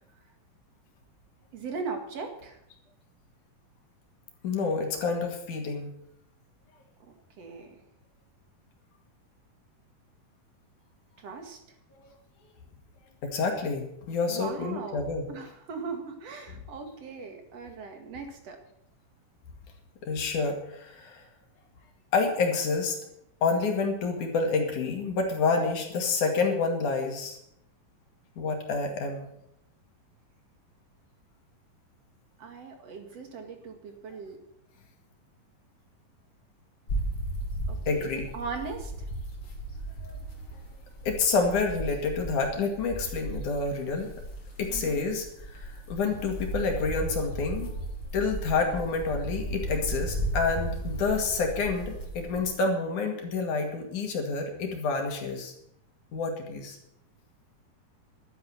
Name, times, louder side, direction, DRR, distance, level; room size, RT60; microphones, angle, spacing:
voice 1, 1.5-2.6 7.1-7.8 11.2-11.6 14.3-18.6 32.4-34.4 37.7-39.1 44.7-45.1, right 4 dB, 50° right, 4 dB, 2.8 m, -39 dB
voice 2, 4.4-5.9 12.0-12.1 13.2-15.3 20.0-21.3 22.1-23.0 23.4-27.4 28.4-29.3 37.9-38.3 40.0-40.1 41.0-44.1 44.6-45.3 45.5-47.7 48.1-55.5 56.1-56.8, left 4 dB, 65° left, 3 dB, 3.5 m, -28 dB
sound 1, 36.9-52.5, right 1 dB, 35° left, 2.7 m, -36 dB
12.0 x 9.3 x 7.9 m, 0.76 s
omnidirectional pair, 4.0 m